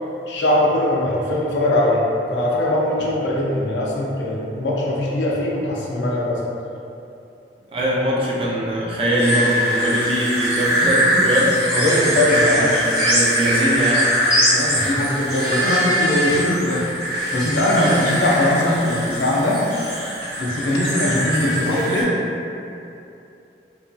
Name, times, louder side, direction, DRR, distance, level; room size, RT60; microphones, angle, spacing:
voice 1, 0.3-6.4 11.7-12.8 14.5-16.9 17.3-19.6 20.4-22.1, left 1 dB, 85° left, -4 dB, 0.5 m, -21 dB
voice 2, 7.7-11.6 12.5-14.1 17.8-18.1, right 1 dB, 30° right, -5 dB, 0.4 m, -22 dB
sound 1, 9.2-22.0, equal, 55° right, 0.8 m, -22 dB
3.0 x 2.6 x 2.2 m, 2.8 s
head